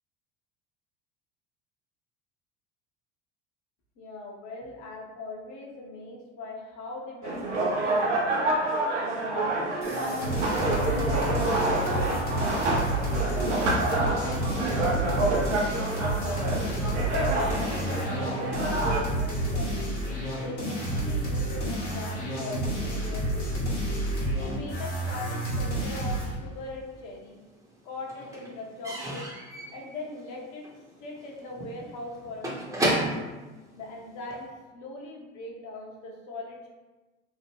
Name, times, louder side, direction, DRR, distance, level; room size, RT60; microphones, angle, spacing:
voice 1, 4.0-8.6 9.2-11.1 11.8-16.6 17.1-19.8 20.4-23.6 24.3-27.4 27.8-29.3 29.7-30.7 31.0-32.9 33.7-36.7, left 2 dB, 55° left, -1 dB, 0.8 m, -40 dB
sound 1, 7.2-19.0, right 2 dB, 80° right, 0.7 m, -28 dB
sound 2, 9.8-26.3, right 1 dB, 85° left, 1.1 m, -30 dB
Slam / Squeak / Wood, 26.6-27.4 27.7-34.5, right 1 dB, 10° right, 0.7 m, -33 dB
2.9 x 2.1 x 3.4 m, 1.2 s
hypercardioid pair, 75°, 35 cm